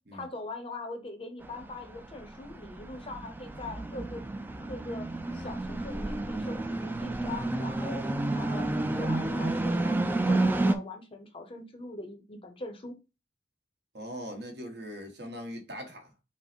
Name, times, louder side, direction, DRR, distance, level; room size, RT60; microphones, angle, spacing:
voice 1, 0.1-4.2 4.7-5.1 5.3-8.0 8.3-12.9, left 2 dB, 30° left, 0.6 m, -42 dB
sound 1, 1.4-10.7, right 2 dB, 10° right, 0.3 m, -30 dB
voice 2, 13.9-16.1, equal, 60° right, 1.2 m, -40 dB
5.5 x 2.0 x 4.3 m
head